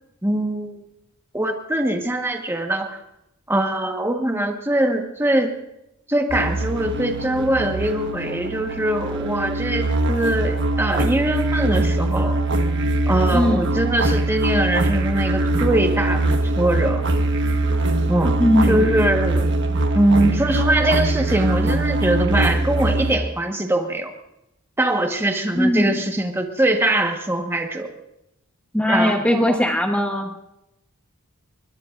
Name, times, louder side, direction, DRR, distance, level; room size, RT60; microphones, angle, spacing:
voice 1, 0.2-0.8 1.3-3.0 3.5-5.6 6.1-12.4 13.1-16.3 16.6-17.1 18.1-18.4 18.6-19.5 19.9-24.1 24.8-27.9 28.9-29.6, right 1 dB, 10° right, 3 dB, 1.3 m, -22 dB
sound 1, 6.3-23.1, right 2 dB, 60° right, 1.3 m, -22 dB
voice 2, 13.3-13.8 18.4-19.0 25.5-26.0 28.7-30.3, left 1 dB, 5° left, 2 dB, 1.0 m, -20 dB
22.5 x 21.0 x 2.5 m, 0.86 s
head